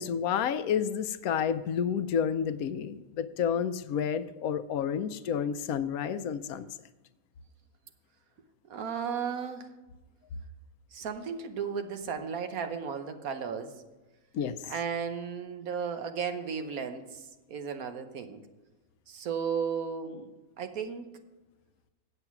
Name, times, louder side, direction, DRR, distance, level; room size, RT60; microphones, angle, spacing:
voice 1, 0.0-6.7 14.3-14.6, left 8 dB, 75° left, 12 dB, 1.0 m, -30 dB
voice 2, 8.7-9.7 10.9-13.7 14.6-17.2 17.5-18.4 19.1-20.3 20.6-21.1, right 6 dB, 75° right, 7 dB, 1.4 m, -34 dB
8.2 x 7.7 x 5.9 m, 1.1 s
omnidirectional pair, 1.5 m